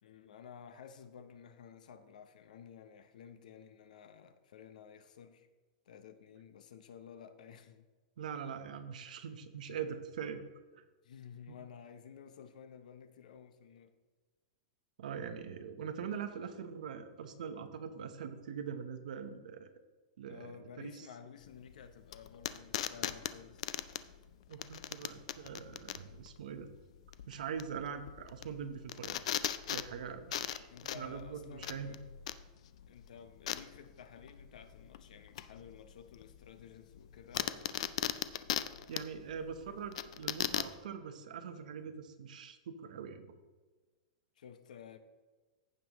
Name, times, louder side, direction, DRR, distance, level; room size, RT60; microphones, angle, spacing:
voice 1, 0.0-5.5 5.9-7.9 11.0-13.9 20.3-23.7 30.7-32.0 32.9-37.8 44.4-45.0, left 7 dB, 70° left, 0.8 m, -53 dB
voice 2, 8.2-10.4 11.5-11.6 15.0-19.7 20.2-21.1 24.5-26.7 27.3-29.2 29.7-30.7 30.9-32.0 38.9-43.3, right 7 dB, 70° right, 0.9 m, -43 dB
sound 1, 21.4-40.8, left 11 dB, 50° left, 0.4 m, -40 dB
15.0 x 5.4 x 3.0 m
supercardioid pair, 180°, 4 cm